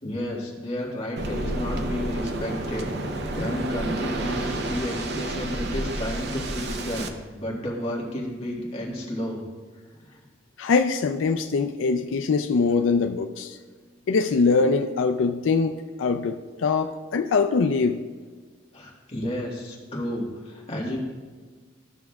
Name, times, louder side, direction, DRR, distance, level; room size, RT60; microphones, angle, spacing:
voice 1, 0.0-9.4 9.9-10.2 18.7-21.0, left 1 dB, 30° left, -4 dB, 1.7 m, -32 dB
Waves surf, 1.2-7.1, right 1 dB, 60° right, 0.7 m, -30 dB
voice 2, 10.6-13.6 14.1-15.7 16.0-18.0, left 4 dB, 85° left, 6 dB, 0.4 m, -23 dB
14.0 x 6.1 x 2.3 m, 1.5 s
head